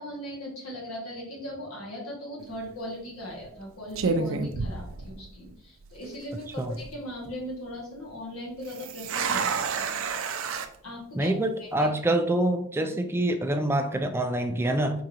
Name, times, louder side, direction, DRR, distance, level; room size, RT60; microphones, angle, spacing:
voice 1, 0.0-10.0 10.8-11.3 11.6-11.9 12.8-12.9, left 1 dB, 85° left, -3 dB, 1.9 m, -39 dB
sound 1, 2.4-2.7 3.4-3.6 3.9-5.5 5.8-5.9 6.5-6.9 8.6-10.7, right 4 dB, 70° right, 0.5 m, -30 dB
voice 2, 11.2-15.0, right 1 dB, 10° right, 6 dB, 0.3 m, -26 dB
4.8 x 3.8 x 2.8 m, 0.65 s
head